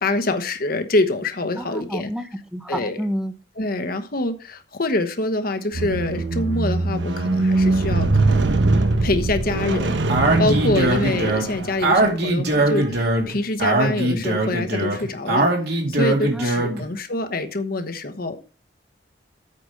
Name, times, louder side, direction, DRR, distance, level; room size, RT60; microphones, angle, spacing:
voice 1, 0.0-2.1 2.7-3.0 3.6-8.4 9.0-10.0 10.4-15.5 15.9-18.5, left 2 dB, 55° left, 1.1 m, -25 dB
voice 2, 1.6-3.3 16.3-16.8, equal, 5° right, 0.8 m, -30 dB
Squeak, 5.7-12.1 12.9-13.0, right 2 dB, 85° right, 1.0 m, -22 dB
Speech, 10.1-16.8, right 2 dB, 60° right, 2.5 m, -21 dB
8.6 x 5.1 x 6.4 m
head